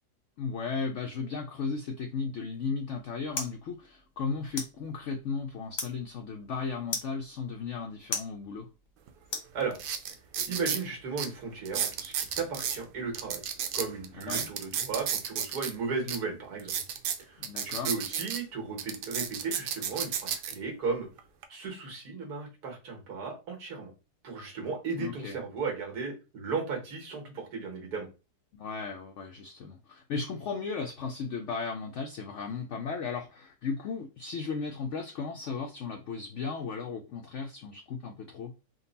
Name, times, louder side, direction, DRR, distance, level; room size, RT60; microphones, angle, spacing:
voice 1, 0.4-8.7 14.3-14.5 17.4-17.9 25.0-25.4 28.5-38.5, left 5 dB, 75° left, 4 dB, 0.6 m, -35 dB
sound 1, 2.5-10.1, left 3 dB, 35° left, 0.7 m, -41 dB
sound 2, 9.1-9.2 9.7-10.8 11.2-11.3 11.7-12.8 13.1-15.7 16.1-16.2 16.6-18.4 18.8-20.5 21.2-21.4, right 8 dB, 90° right, 1.2 m, -32 dB
voice 2, 10.5-13.4 13.7-16.7 17.2-21.1 21.5-23.9 24.2-28.1, right 4 dB, 70° right, 2 dB, 1.8 m, -35 dB
3.8 x 2.2 x 3.9 m, 0.30 s
omnidirectional pair, 1.8 m